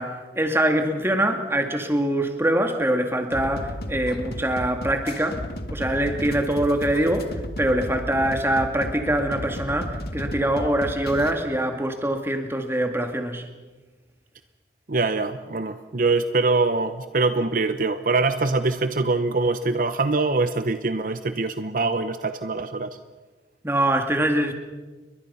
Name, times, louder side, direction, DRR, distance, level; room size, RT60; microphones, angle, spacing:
voice 1, 0.0-5.4 5.7-13.4 23.6-24.5, right 1 dB, 15° right, 4 dB, 2.3 m, -24 dB
sound 1, 3.3-11.3, equal, 60° left, 1.9 m, -34 dB
voice 2, 14.9-22.9, right 3 dB, 50° right, 10 dB, 0.9 m, -23 dB
29.5 x 23.0 x 5.7 m, 1.3 s
head